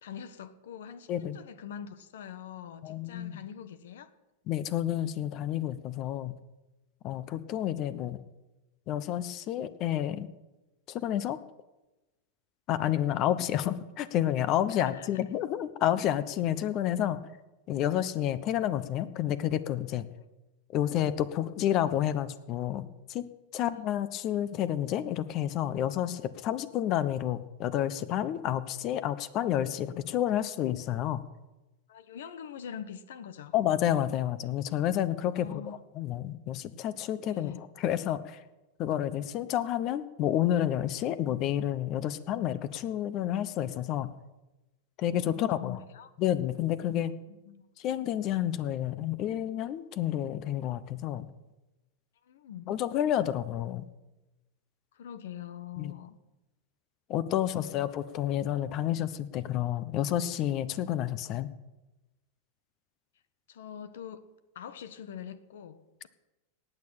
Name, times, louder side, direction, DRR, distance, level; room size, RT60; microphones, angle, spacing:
voice 1, 0.0-4.1 14.7-15.1 20.2-20.3 23.6-23.7 31.9-33.5 35.4-35.8 37.3-37.6 45.2-46.1 46.8-47.6 52.2-52.7 54.9-56.2 57.4-57.9 63.5-64.2 64.5-66.1, left 8 dB, 75° left, 1.2 m, -44 dB
voice 2, 2.8-3.4 4.5-6.3 7.0-8.2 8.9-10.3 10.9-11.4 12.7-17.2 17.7-20.0 20.7-23.3 23.5-31.2 33.5-35.6 35.9-37.5 37.8-38.4 38.8-44.1 45.0-45.8 46.2-47.1 47.8-51.3 52.7-53.8 55.8-55.9 57.1-61.5, left 11 dB, 45° left, 1.0 m, -30 dB
18.5 x 6.7 x 8.9 m
hypercardioid pair, 110°, 0 cm